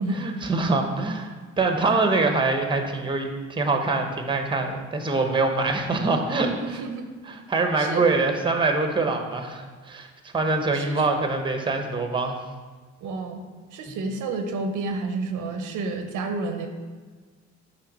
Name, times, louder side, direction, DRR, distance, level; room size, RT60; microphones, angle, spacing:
voice 1, 0.1-6.8 7.3-10.1 10.3-12.4 13.9-14.0, right 3 dB, 15° right, 5 dB, 0.7 m, -24 dB
voice 2, 6.7-7.1 7.8-8.0 10.7-11.0 13.0-13.4 13.7-16.7, right 3 dB, 85° right, 6 dB, 0.7 m, -30 dB
5.8 x 3.2 x 5.3 m, 1.4 s
cardioid pair, 90°, 30 cm